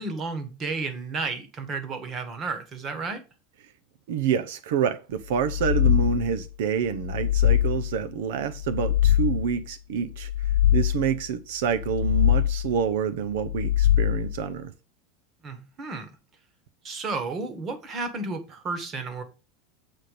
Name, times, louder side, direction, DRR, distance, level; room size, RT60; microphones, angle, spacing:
voice 1, 0.0-3.2 15.4-16.1 16.8-19.2, right 3 dB, 25° right, 1.5 m, -32 dB
voice 2, 4.1-14.7, right 7 dB, 70° right, 0.8 m, -27 dB
sound 1, 5.4-6.4 6.9-8.0 8.5-9.6 10.1-11.2 11.7-12.8 13.4-14.5, left 12 dB, 85° left, 0.3 m, -23 dB
7.9 x 4.3 x 6.7 m
supercardioid pair, 170°, 0 cm